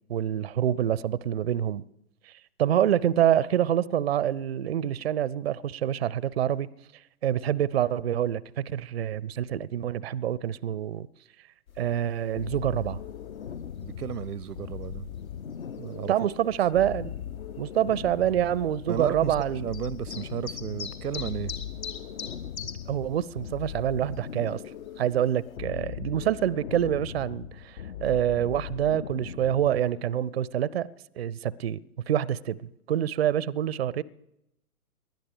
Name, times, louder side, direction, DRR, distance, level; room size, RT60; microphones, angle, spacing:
voice 1, 0.1-1.8 2.3-2.4 2.6-6.7 7.2-11.1 11.8-13.0 16.1-17.1 17.6-19.7 22.9-24.6 25.0-30.9 31.2-31.8 32.1-32.6 32.9-34.0, right 10 dB, 45° right, 0.4 m, -26 dB
sound 1, 11.7-25.6, left 6 dB, 65° left, 1.8 m, -46 dB
sound 2, 12.4-30.0, left 9 dB, 50° left, 0.6 m, -39 dB
voice 2, 13.8-15.1 15.8-16.1 16.4-16.5 18.9-21.5, right 8 dB, 90° right, 0.6 m, -33 dB
19.5 x 12.0 x 5.0 m
figure-of-eight pair, 125°, 44 cm